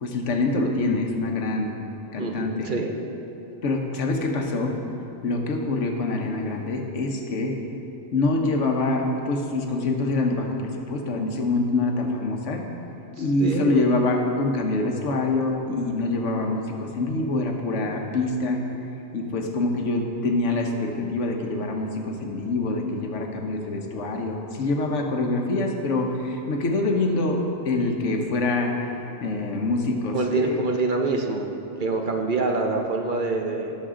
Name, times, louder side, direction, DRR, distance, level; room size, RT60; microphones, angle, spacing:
voice 1, 0.0-1.8 2.1-2.7 3.6-4.8 5.2-7.6 8.1-12.7 13.2-18.6 19.1-28.9 29.2-30.6, left 2 dB, 80° left, 3 dB, 1.3 m, -25 dB
voice 2, 2.2-2.9 13.2-13.8 30.1-31.5 31.8-33.8, right 3 dB, 50° right, 2 dB, 0.8 m, -26 dB
17.0 x 6.5 x 3.7 m, 2.9 s
omnidirectional pair, 1.2 m